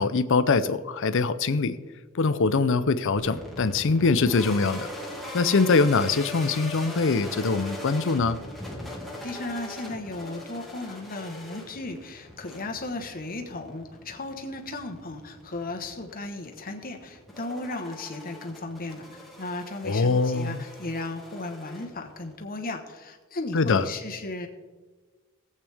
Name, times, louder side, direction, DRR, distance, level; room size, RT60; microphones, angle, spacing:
voice 1, 0.0-1.8 2.1-4.9 5.3-8.4 19.8-20.6 23.5-23.8, left 4 dB, 65° left, 13 dB, 0.6 m, -23 dB
sound 1, 3.2-22.4, left 1 dB, ahead, 2.0 m, -41 dB
voice 2, 9.2-24.5, left 2 dB, 45° left, 4 dB, 1.3 m, -35 dB
18.5 x 8.2 x 3.5 m, 1.4 s
head